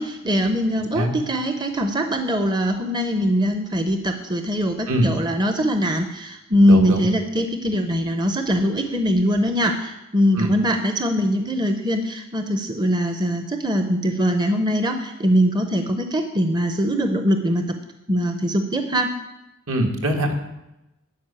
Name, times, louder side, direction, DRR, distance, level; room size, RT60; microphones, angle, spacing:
voice 1, 0.0-17.8 18.1-19.1, equal, 20° right, 6 dB, 0.7 m, -22 dB
voice 2, 6.7-7.1 10.3-10.5 19.7-20.3, equal, 70° right, 3 dB, 1.7 m, -22 dB
12.5 x 5.2 x 8.7 m, 0.94 s
head